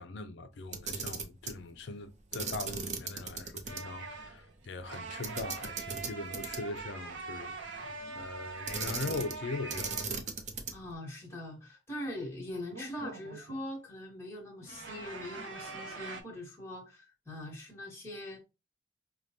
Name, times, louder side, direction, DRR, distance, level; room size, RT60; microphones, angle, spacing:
voice 1, 0.0-10.3, left 3 dB, 60° left, 0.5 m, -41 dB
Camera, 0.6-1.6 2.3-3.8 4.1-4.2 5.2-6.8 8.7-9.4 9.7-10.9, right 5 dB, 35° right, 0.6 m, -37 dB
sound 1, 3.7-10.1 12.7-13.7 14.6-16.2, right 4 dB, 70° right, 0.8 m, -43 dB
voice 2, 10.7-18.4, left 1 dB, 15° left, 1.3 m, -42 dB
4.8 x 2.2 x 2.8 m
head